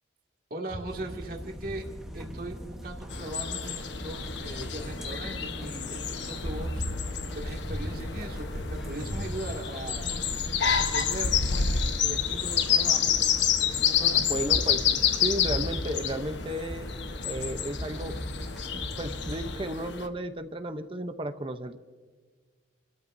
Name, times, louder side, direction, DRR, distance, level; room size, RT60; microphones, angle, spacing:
voice 1, 0.5-1.9 2.1-10.1 10.8-13.2 13.6-14.4, right 1 dB, 50° right, 0 dB, 2.2 m, -39 dB
sound 1, 0.7-14.4 14.7-15.7 16.1-16.8 17.1-17.3 17.8-17.9, equal, 50° left, 2.0 m, -40 dB
sound 2, 0.9-19.6, equal, ahead, 1.2 m, -40 dB
sound 3, 3.1-20.1, left 7 dB, 70° left, 1.1 m, -29 dB
voice 2, 14.3-14.9 15.2-16.9 17.2-18.1 19.0-21.8, right 1 dB, 25° right, 8 dB, 0.7 m, -33 dB
27.5 x 13.5 x 2.7 m, 1.5 s
head